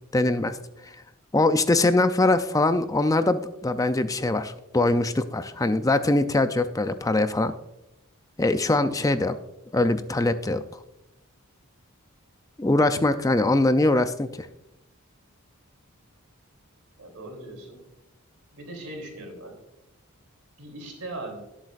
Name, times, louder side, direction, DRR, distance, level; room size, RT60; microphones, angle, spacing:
voice 1, 0.1-0.6 1.3-7.5 8.4-9.3 9.7-10.6 12.6-14.5, left 2 dB, 15° left, 10 dB, 0.4 m, -22 dB
voice 2, 17.0-17.8 18.5-19.5 20.6-21.4, right 2 dB, 85° right, 2 dB, 3.2 m, -39 dB
17.5 x 8.1 x 2.5 m, 0.90 s
head